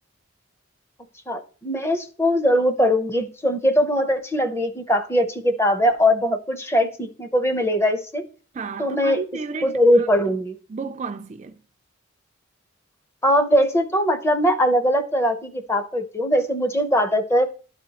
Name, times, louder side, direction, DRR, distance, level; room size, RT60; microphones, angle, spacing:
voice 1, 1.3-8.2 8.8-9.2 9.6-10.6 13.2-17.5, equal, 15° left, 0.6 m, -21 dB
voice 2, 8.5-10.1 10.7-11.6, right 4 dB, 35° right, 0.3 m, -32 dB
12.0 x 4.2 x 2.8 m
head